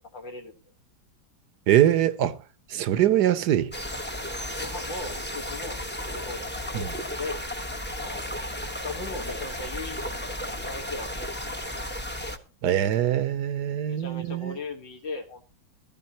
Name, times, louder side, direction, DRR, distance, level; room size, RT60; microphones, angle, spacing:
voice 1, 0.1-0.5 4.5-5.8 6.1-7.4 8.0-8.3 8.8-11.2 11.5-11.6 13.8-15.4, left 3 dB, 70° left, 2.2 m, -38 dB
voice 2, 1.7-2.4 2.7-3.7 6.7-6.9 12.6-14.6, right 11 dB, 65° right, 1.2 m, -23 dB
sound 1, 3.7-12.4, left 1 dB, 10° left, 0.7 m, -34 dB
16.0 x 13.0 x 2.9 m
omnidirectional pair, 2.1 m